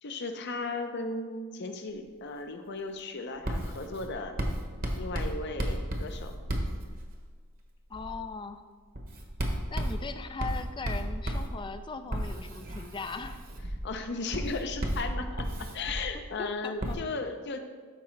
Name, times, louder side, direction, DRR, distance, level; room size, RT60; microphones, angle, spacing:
voice 1, 0.0-4.4 5.0-6.4 13.8-17.6, left 3 dB, 55° left, 7 dB, 0.7 m, -36 dB
Writing, 3.4-7.4 7.9-8.2 8.9-16.3 16.8-16.9, right 1 dB, 40° right, 1.0 m, -34 dB
voice 2, 7.9-8.6 9.7-13.4 16.4-17.0, left 4 dB, 20° left, 10 dB, 0.3 m, -39 dB
12.0 x 4.8 x 3.2 m, 1.5 s
head